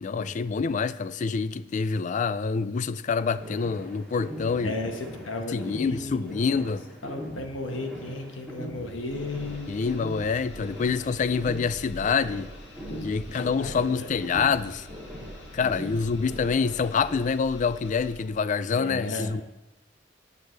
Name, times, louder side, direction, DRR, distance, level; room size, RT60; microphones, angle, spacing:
voice 1, 0.0-4.7 5.5-6.8 9.7-12.5 13.0-14.9 15.5-19.4, left 5 dB, 40° left, 0.3 m, -26 dB
sound 1, 3.3-17.2, equal, 5° left, 2.6 m, -41 dB
voice 2, 4.6-6.3 7.0-9.7 12.8-14.1 15.5-15.7 18.7-19.3, left 2 dB, 90° left, 1.4 m, -35 dB
sound 2, 8.7-18.4, equal, 60° left, 1.5 m, -46 dB
14.5 x 8.3 x 3.3 m
head